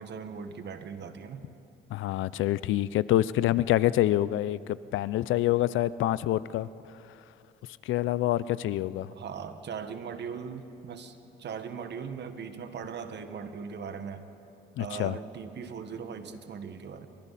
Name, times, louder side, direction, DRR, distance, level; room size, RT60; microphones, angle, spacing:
voice 1, 0.0-1.4 9.1-14.3 14.8-17.1, right 6 dB, 60° right, 8 dB, 1.6 m, -39 dB
voice 2, 1.9-4.6 4.9-6.7 7.8-9.1 14.8-15.2, left 14 dB, 80° left, 18 dB, 0.5 m, -26 dB
28.5 x 25.0 x 4.2 m, 2.8 s
cardioid pair, 90°, 20 cm